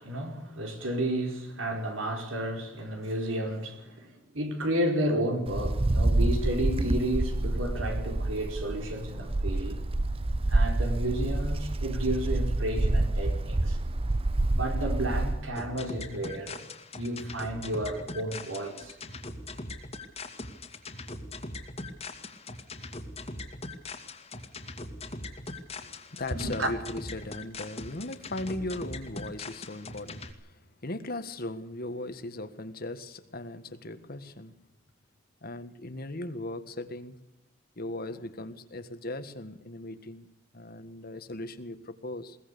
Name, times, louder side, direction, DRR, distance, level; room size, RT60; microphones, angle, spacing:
voice 1, 0.0-9.8 10.5-13.8 14.5-19.0 26.4-26.7, right 1 dB, 80° right, 4.8 m, -32 dB
Wind, 5.5-15.5, right 2 dB, 30° right, 0.7 m, -27 dB
sound 1, 15.5-30.3, left 2 dB, 30° left, 2.3 m, -41 dB
voice 2, 25.8-34.5 35.4-37.2 37.8-40.3 40.5-42.4, left 2 dB, 50° left, 1.7 m, -38 dB
21.5 x 19.0 x 6.9 m
head